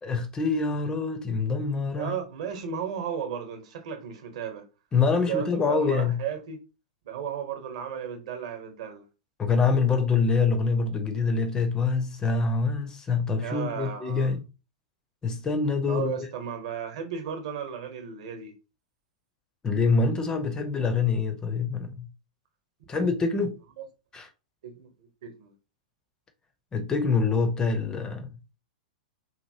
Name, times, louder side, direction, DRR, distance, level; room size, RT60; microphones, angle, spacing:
voice 1, 0.0-2.1 4.9-6.2 9.4-14.4 15.2-16.1 19.6-22.1 22.9-23.6 24.1-24.3 26.7-28.3, left 4 dB, 20° left, 0.4 m, -25 dB
voice 2, 1.9-4.7 5.1-6.6 7.0-9.0 13.4-14.3 15.9-18.5 22.9-23.4 23.8-23.9 24.6-25.5, right 8 dB, 55° right, 0.8 m, -35 dB
2.8 x 2.6 x 2.6 m
figure-of-eight pair, 100°, 4 cm